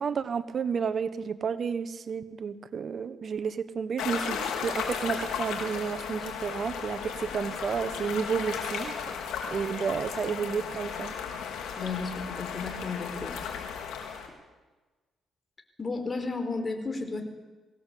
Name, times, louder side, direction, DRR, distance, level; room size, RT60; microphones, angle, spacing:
voice 1, 0.0-9.2 9.5-11.1, right 6 dB, 50° right, 13 dB, 1.2 m, -31 dB
sound 1, 4.0-14.3, left 7 dB, 90° left, 4.5 m, -35 dB
voice 2, 11.8-13.3 15.8-17.2, left 3 dB, 30° left, 6 dB, 4.3 m, -33 dB
22.5 x 17.0 x 8.4 m, 1.2 s
cardioid pair, 90°, 0 cm